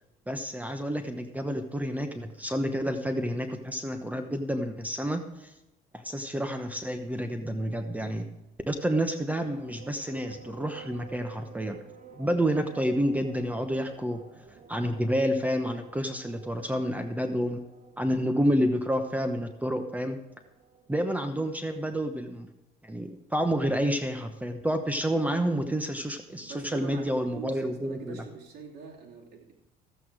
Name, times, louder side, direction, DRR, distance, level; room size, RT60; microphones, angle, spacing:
voice 1, 0.3-5.5 5.9-8.3 8.7-11.8 12.2-14.2 14.7-17.6 18.0-20.2 20.9-22.5 22.8-28.2, equal, 10° right, 6 dB, 0.9 m, -29 dB
sound 1, 9.2-21.1, right 6 dB, 45° right, 1.5 m, -52 dB
voice 2, 26.4-29.5, right 6 dB, 75° right, -2 dB, 2.7 m, -44 dB
13.0 x 8.6 x 4.7 m, 0.95 s
cardioid pair, 110°, 17 cm